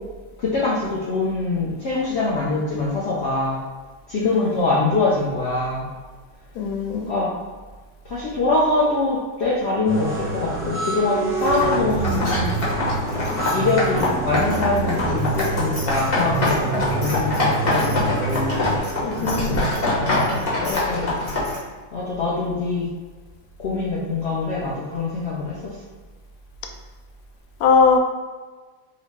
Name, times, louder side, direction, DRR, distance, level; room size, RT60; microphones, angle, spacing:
voice 1, 0.4-3.6 4.1-5.9 6.9-7.3 8.0-12.6 13.5-18.7 20.6-21.1 21.9-22.9 23.6-25.8, left 3 dB, 90° left, -7 dB, 0.5 m, -23 dB
voice 2, 6.6-7.1 19.0-19.5 27.6-28.0, left 5 dB, 70° left, 3 dB, 0.9 m, -19 dB
sound 1, 9.9-18.8, right 4 dB, 40° right, 1.3 m, -27 dB
sound 2, 11.4-21.6, left 2 dB, 40° left, 0.9 m, -24 dB
4.7 x 2.0 x 3.4 m, 1.4 s
omnidirectional pair, 1.9 m